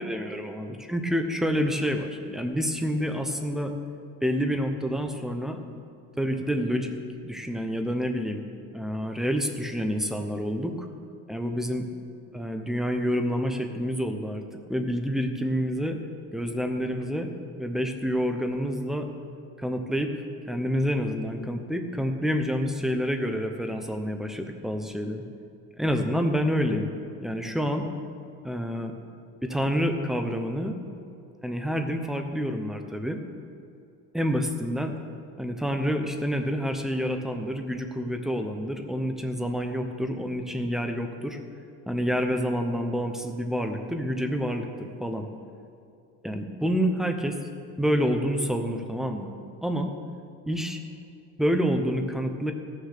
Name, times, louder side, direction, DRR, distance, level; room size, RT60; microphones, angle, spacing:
voice 1, 0.0-3.7 4.2-5.6 6.2-6.9 7.2-8.4 8.7-10.9 11.3-11.9 12.3-14.4 14.7-16.0 16.3-17.3 17.6-19.1 19.6-20.1 20.5-25.2 25.8-26.9 27.2-27.9 28.4-28.9 29.4-30.8 31.4-33.2 34.1-35.0 35.4-41.4 41.9-45.3 46.2-47.4 47.8-49.4 49.6-49.9 50.5-50.8 51.4-52.5, equal, ahead, 5 dB, 0.7 m, -28 dB
16.5 x 6.6 x 6.6 m, 2.6 s
cardioid pair, 160°, 31 cm